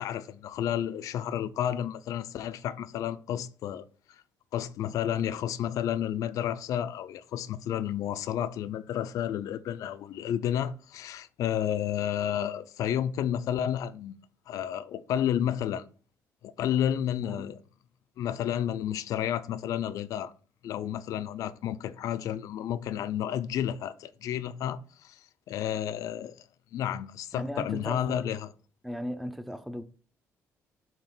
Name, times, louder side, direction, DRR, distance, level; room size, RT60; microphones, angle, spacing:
voice 1, 0.0-3.8 4.5-14.1 14.5-15.9 16.4-17.6 18.2-20.3 20.6-25.2 25.5-26.4 26.7-28.5, left 10 dB, 70° left, 0.5 m, -31 dB
voice 2, 27.3-28.2 28.8-29.8, equal, ahead, 0.5 m, -37 dB
7.3 x 3.0 x 5.6 m
cardioid pair, 145°, 6 cm